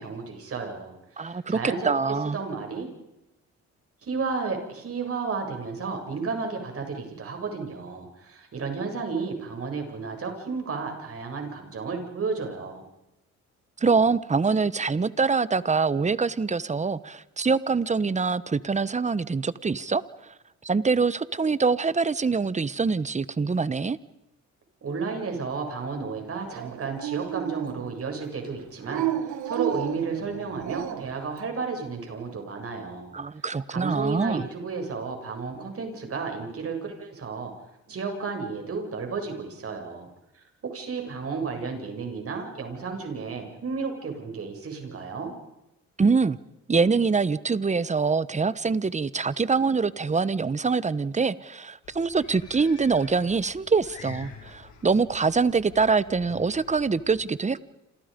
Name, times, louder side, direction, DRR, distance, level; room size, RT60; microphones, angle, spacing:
voice 1, 0.0-1.9 2.3-2.9 4.0-12.8 24.8-33.1 33.7-37.5 37.9-40.1 40.6-45.3, right 4 dB, 50° right, 3 dB, 7.8 m, -32 dB
voice 2, 1.2-1.6 1.8-2.4 13.8-20.0 20.6-24.0 33.1-34.5 46.0-46.4 46.7-57.7, right 4 dB, 25° right, 16 dB, 1.2 m, -24 dB
Dog, 26.5-28.0 28.8-31.2, right 11 dB, 70° right, 1.9 m, -32 dB
sound 1, 51.8-57.2, left 6 dB, 70° left, 7.5 m, -47 dB
28.5 x 28.0 x 5.4 m, 0.90 s
cardioid pair, 90°, 30 cm